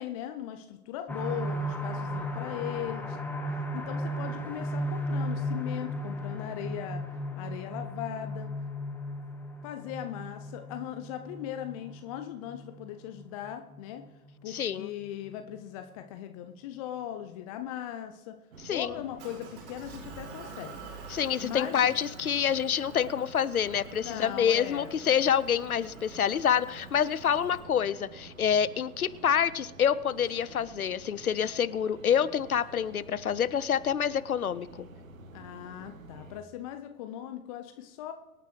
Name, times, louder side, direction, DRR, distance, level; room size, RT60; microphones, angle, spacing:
voice 1, 0.0-3.2 3.7-7.0 7.4-8.5 9.6-14.0 14.4-18.4 18.7-20.8 21.4-21.8 24.0-24.9 35.3-38.1, left 11 dB, 25° left, 7 dB, 0.6 m, -39 dB
sound 1, 1.1-14.6 15.0-15.1 15.5-15.6, equal, 5° left, 1.2 m, -35 dB
voice 2, 14.5-14.9 18.6-18.9 21.1-34.9, left 8 dB, 75° left, 17 dB, 0.7 m, -27 dB
sound 2, 18.5-36.4, right 4 dB, 65° right, 1.4 m, -50 dB
Motor vehicle (road) / Engine, 19.2-27.6, right 4 dB, 50° right, 5.1 m, -48 dB
25.0 x 9.3 x 3.1 m, 1.1 s
figure-of-eight pair, 110°, 44 cm